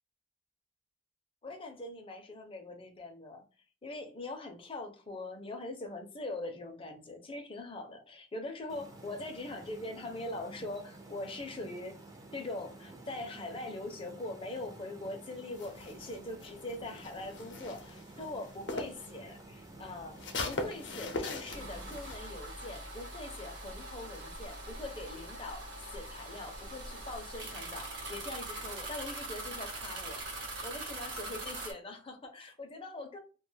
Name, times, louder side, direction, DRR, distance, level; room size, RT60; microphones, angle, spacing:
voice 1, 1.4-3.4 3.8-12.0 12.3-30.2 30.6-33.2, left 2 dB, 30° left, 0.5 m, -42 dB
sound 1, 8.7-22.0, right 2 dB, 20° right, 0.5 m, -51 dB
sound 2, 15.5-19.1 19.4-22.2, left 2 dB, 75° left, 0.6 m, -40 dB
sound 3, 21.5-31.7, right 2 dB, 75° right, 0.9 m, -42 dB
2.4 x 2.2 x 3.1 m
head